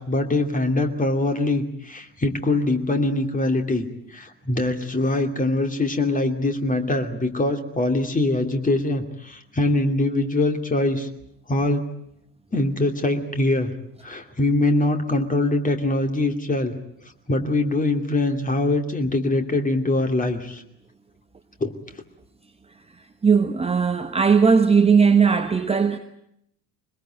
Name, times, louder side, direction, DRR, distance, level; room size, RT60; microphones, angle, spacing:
voice 1, 0.0-11.1 11.5-11.8 12.5-13.7 14.0-16.7 17.3-20.6 21.6-21.7, left 2 dB, 15° left, 2.6 m, -23 dB
voice 2, 23.2-26.0, right 5 dB, 10° right, 1.1 m, -18 dB
22.5 x 21.0 x 9.0 m
figure-of-eight pair, 70°, 48 cm